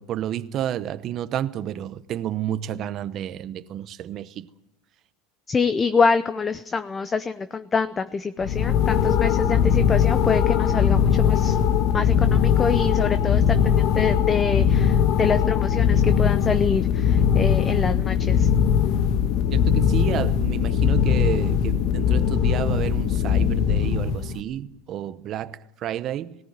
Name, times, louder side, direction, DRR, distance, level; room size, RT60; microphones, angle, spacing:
voice 1, 0.0-4.5 19.5-26.3, right 11 dB, 35° right, 0.8 m, -30 dB
voice 2, 5.5-11.5 11.9-18.5, left 5 dB, 15° left, 0.7 m, -25 dB
sound 1, 8.4-24.4, left 8 dB, 50° left, 1.4 m, -20 dB
18.5 x 17.5 x 9.5 m
supercardioid pair, 145°, 0 cm